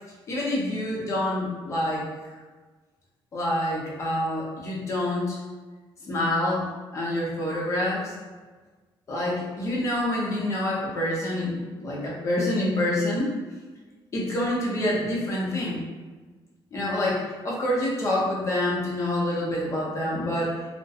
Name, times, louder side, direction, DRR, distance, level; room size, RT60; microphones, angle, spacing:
voice 1, 0.3-2.1 3.3-5.4 6.0-8.1 9.1-13.3 14.1-15.8 16.7-20.5, left 1 dB, 35° left, -4 dB, 0.6 m, -27 dB
2.3 x 2.1 x 2.6 m, 1.3 s
cardioid pair, 170°, 9 cm